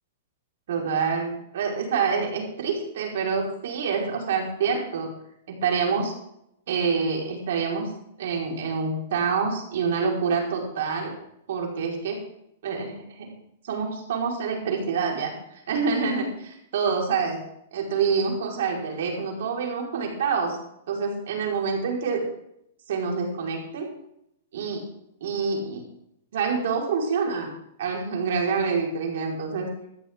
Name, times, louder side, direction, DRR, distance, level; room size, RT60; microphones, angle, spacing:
voice 1, 0.7-5.1 5.5-6.1 6.7-7.9 8.2-11.2 11.5-12.2 12.6-13.3 13.6-17.4 17.7-20.6 20.9-22.2 22.9-23.9 24.5-24.8 25.2-25.8 26.3-27.5 27.8-29.7, right 5 dB, 70° right, 0 dB, 4.6 m, -27 dB
14.5 x 14.0 x 3.7 m, 0.76 s
hypercardioid pair, 135°, 0 cm